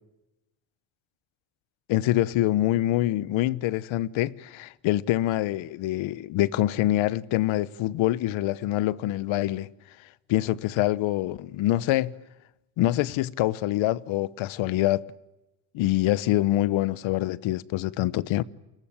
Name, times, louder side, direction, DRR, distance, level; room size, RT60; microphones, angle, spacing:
voice 1, 1.9-9.7 10.3-12.1 12.8-15.0 15.7-18.4, left 15 dB, 80° left, 1.1 m, -25 dB
29.0 x 22.0 x 8.9 m
cardioid pair, 100°, 47 cm